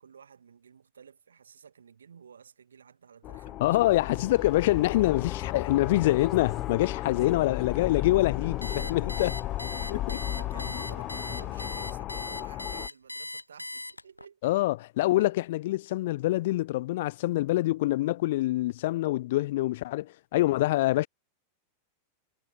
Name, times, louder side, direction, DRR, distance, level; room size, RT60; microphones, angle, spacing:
voice 1, 0.0-3.7 8.7-14.5 15.2-15.3, right 7 dB, 70° right, 2.5 m, -52 dB
sound 1, 3.2-12.9, left 15 dB, 35° left, 0.9 m, -34 dB
voice 2, 3.6-9.3 9.9-10.2 14.4-21.1, left 17 dB, 55° left, 0.3 m, -25 dB
sound 2, 3.8-11.7, right 14 dB, 35° right, 4.3 m, -53 dB
Alarm, 8.6-14.3, left 2 dB, 85° left, 1.2 m, -39 dB
figure-of-eight pair, 90°, 0 cm